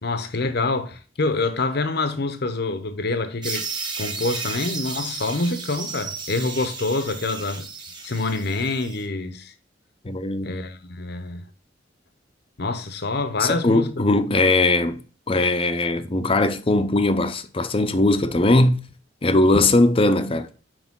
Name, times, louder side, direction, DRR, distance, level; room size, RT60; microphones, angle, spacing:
voice 1, 0.0-3.7 4.0-7.7 8.0-9.5 10.4-11.4 12.6-14.1, left 3 dB, 60° left, 0.9 m, -26 dB
sound 1, 3.4-9.0, right 4 dB, 25° right, 1.7 m, -33 dB
voice 2, 10.0-10.6 13.4-15.0 15.3-18.8 19.2-20.5, left 2 dB, 30° left, 0.7 m, -20 dB
6.2 x 4.9 x 3.7 m
head